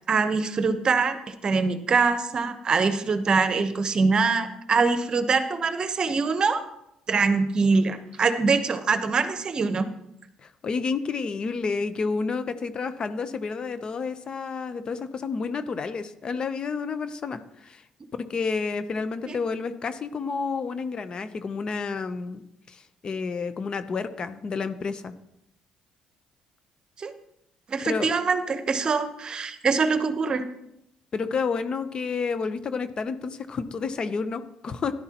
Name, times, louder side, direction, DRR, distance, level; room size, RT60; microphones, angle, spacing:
voice 1, 0.1-6.6 7.1-9.9 19.3-19.4 27.0-27.1 27.7-30.5, right 4 dB, 40° right, 9 dB, 1.0 m, -24 dB
voice 2, 10.4-17.8 18.2-22.4 22.7-25.1 27.8-28.1 31.1-34.9, left 5 dB, 40° left, 11 dB, 0.8 m, -30 dB
13.0 x 11.0 x 3.0 m, 0.81 s
cardioid pair, 95°, 2 cm